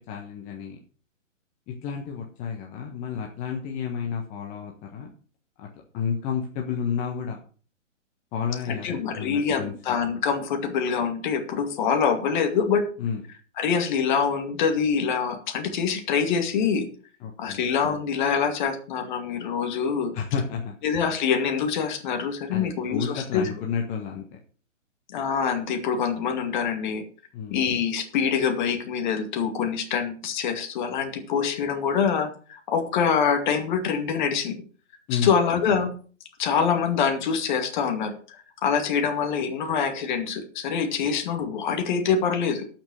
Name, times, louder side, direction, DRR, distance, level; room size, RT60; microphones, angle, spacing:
voice 1, 0.1-0.8 1.7-5.1 5.6-5.7 5.9-7.4 8.3-9.7 13.0-13.2 17.2-17.6 20.1-20.7 22.5-24.2 27.3-27.6 35.1-35.4, left 7 dB, 20° left, 1 dB, 1.3 m, -31 dB
voice 2, 8.7-12.8 13.6-16.9 17.4-20.2 20.8-23.5 25.1-27.0 27.5-34.6 35.1-35.9 36.4-38.1 38.6-42.7, left 6 dB, 35° left, 7 dB, 2.3 m, -25 dB
12.5 x 6.0 x 6.3 m, 0.40 s
hypercardioid pair, 140°, 39 cm